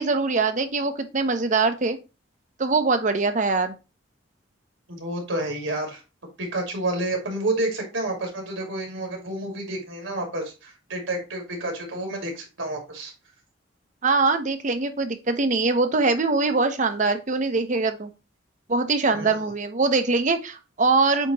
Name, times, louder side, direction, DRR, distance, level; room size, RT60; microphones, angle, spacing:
voice 1, 0.0-2.0 2.6-3.7 14.0-18.1 18.7-21.3, right 3 dB, 40° right, 8 dB, 0.7 m, -23 dB
voice 2, 4.9-6.0 6.4-13.1 19.1-19.4, right 1 dB, 80° right, 2 dB, 2.5 m, -29 dB
8.1 x 2.9 x 4.0 m, 0.28 s
head